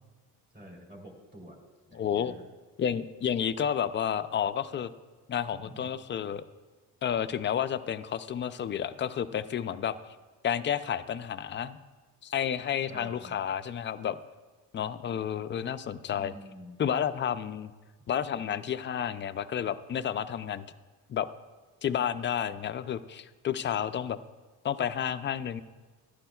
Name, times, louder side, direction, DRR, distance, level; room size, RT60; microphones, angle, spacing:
voice 1, 0.5-1.6 1.9-2.4 5.5-5.8 12.9-13.4 16.1-16.8, equal, 25° right, -1 dB, 3.1 m, -48 dB
voice 2, 1.9-2.4 2.8-4.9 5.3-6.4 7.0-10.0 10.4-11.8 12.2-14.2 14.7-16.3 16.8-17.7 18.1-20.7 21.1-21.3 21.8-24.2 24.6-25.6, left 9 dB, 30° left, 12 dB, 0.3 m, -31 dB
14.5 x 11.5 x 2.3 m, 1.3 s
cardioid pair, 110°, 41 cm